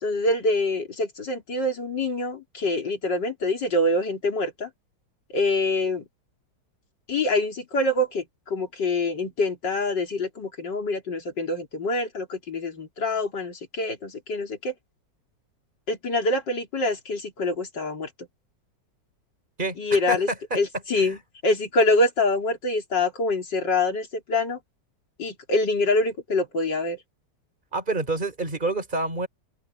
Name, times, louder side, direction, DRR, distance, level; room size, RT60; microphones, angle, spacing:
voice 1, 0.0-4.7 5.3-6.1 7.1-14.7 15.9-18.1 19.8-20.3 20.5-21.2 21.4-24.6 25.2-27.0, left 2 dB, 70° left, 4.1 m, -25 dB
voice 2, 19.6-20.6 21.0-21.2 27.7-29.3, right 2 dB, 25° right, 4.6 m, -28 dB
omnidirectional pair, 2.0 m